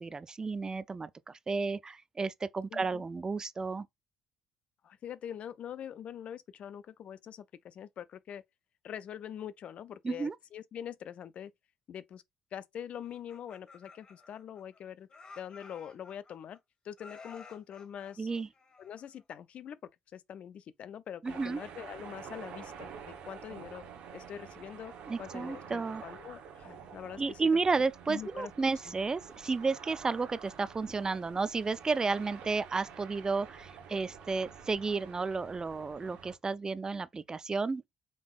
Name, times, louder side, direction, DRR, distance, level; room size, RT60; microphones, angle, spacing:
voice 1, 0.0-3.9 10.0-10.3 18.2-18.5 21.2-21.6 25.1-26.0 27.2-37.9, right 4 dB, 30° right, 0.4 m, -32 dB
voice 2, 2.7-3.0 4.8-8.4 8.8-11.5 11.9-12.2 12.5-15.1 15.4-16.6 16.8-18.3 18.8-19.8 20.1-23.8 24.1-24.9 25.2-27.4 28.1-29.0, left 9 dB, 55° left, 0.4 m, -44 dB
Laughter, 13.1-14.8 15.1-16.6 17.0-19.2, left 4 dB, 35° left, 1.5 m, -53 dB
sound 1, 21.2-36.4, right 7 dB, 70° right, 1.0 m, -49 dB
5.2 x 3.5 x 2.4 m
hypercardioid pair, 55°, 2 cm